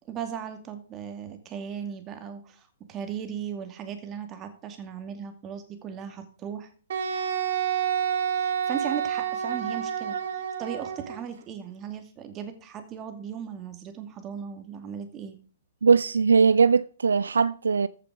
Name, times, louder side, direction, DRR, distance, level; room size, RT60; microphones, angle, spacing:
voice 1, 0.1-6.7 8.3-15.4, right 8 dB, 25° right, 2.4 m, -37 dB
Wind instrument woodwind instrument, 6.9-11.2, right 8 dB, 65° right, 1.8 m, -29 dB
voice 2, 15.8-17.9, right 5 dB, 80° right, 0.4 m, -20 dB
14.5 x 6.7 x 5.0 m
hypercardioid pair, 120°, 0 cm